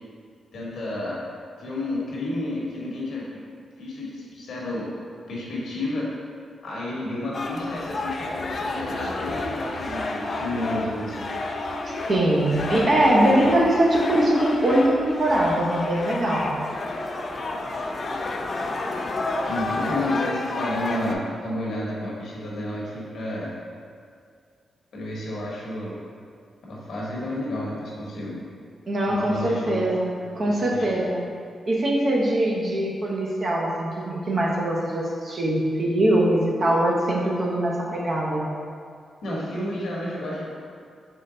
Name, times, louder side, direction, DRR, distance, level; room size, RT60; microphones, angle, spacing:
voice 1, 0.5-1.2 1.6-3.5 3.8-4.9 5.3-6.1 6.6-11.3 12.3-12.5 19.4-23.5 24.9-26.0 26.6-28.4 29.1-29.8 30.5-31.0 39.2-40.5, left 1 dB, 70° left, -5 dB, 1.0 m, -31 dB
sound 1, 7.3-21.2, left 2 dB, 40° left, 0.3 m, -30 dB
sound 2, 8.7-13.0, equal, 20° right, 1.3 m, -43 dB
voice 2, 11.8-16.5 28.9-31.2 31.7-38.4, right 1 dB, 45° right, -3 dB, 0.8 m, -22 dB
3.8 x 3.2 x 3.8 m, 2.2 s
cardioid pair, 110°, 0 cm